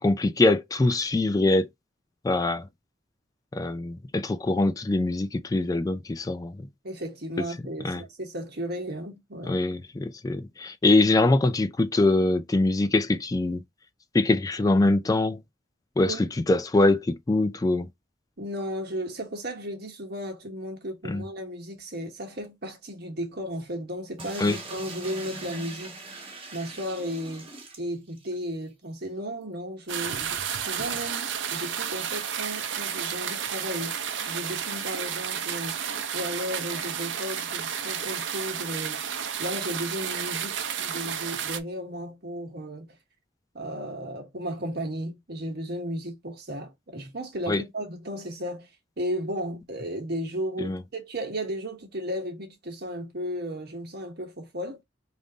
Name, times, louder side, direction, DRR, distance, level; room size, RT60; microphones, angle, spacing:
voice 1, 0.0-1.7 2.2-2.7 3.5-6.7 7.8-8.0 9.5-13.6 14.1-15.4 16.0-17.9 21.1-21.2 24.4-24.6 47.5-47.6 50.6-50.8, left 2 dB, 20° left, 0.3 m, -23 dB
voice 2, 6.8-9.6 16.1-16.3 18.4-27.5 27.8-34.0 34.3-35.8 36.1-39.1 39.4-42.9 43.5-48.7 49.0-54.8, equal, 60° right, 1.3 m, -34 dB
sound 1, 24.2-28.4 28.7-28.8 29.0-29.1 30.8-31.1, right 3 dB, 30° right, 1.2 m, -41 dB
sound 2, 29.9-41.6, right 8 dB, 90° right, 0.6 m, -32 dB
3.5 x 2.6 x 3.8 m
head